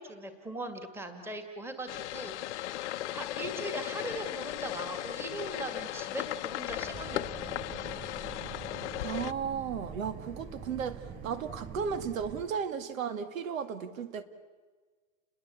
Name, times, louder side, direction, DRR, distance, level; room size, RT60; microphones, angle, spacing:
voice 1, 0.0-7.6, right 2 dB, 5° right, 7 dB, 1.9 m, -40 dB
sound 1, 1.9-9.3, left 14 dB, 60° left, 0.9 m, -36 dB
sound 2, 6.8-12.4, right 6 dB, 25° right, 4.3 m, -45 dB
voice 2, 9.0-14.2, right 7 dB, 80° right, 12 dB, 2.3 m, -35 dB
30.0 x 22.0 x 8.5 m, 1.4 s
supercardioid pair, 170°, 39 cm